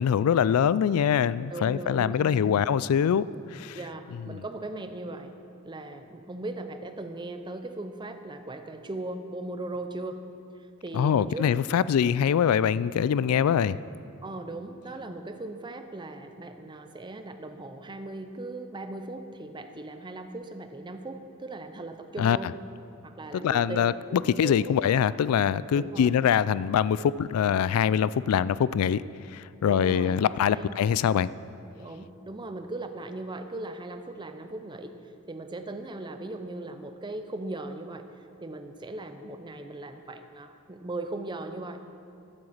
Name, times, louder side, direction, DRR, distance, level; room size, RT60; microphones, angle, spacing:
voice 1, 0.0-3.2 3.5-3.8 4.3-4.4 10.9-13.8 22.2-22.4 23.3-29.0 29.3-31.3, left 8 dB, 85° left, 18 dB, 0.3 m, -24 dB
voice 2, 1.5-2.7 3.7-5.3 5.6-10.2 10.6-11.6 14.2-22.5 23.0-23.8 24.1-24.7 25.7-26.2 29.6-30.7 31.7-34.9 35.3-38.1 38.4-41.8, right 2 dB, 20° right, 8 dB, 0.6 m, -38 dB
11.5 x 7.8 x 7.2 m, 2.6 s
head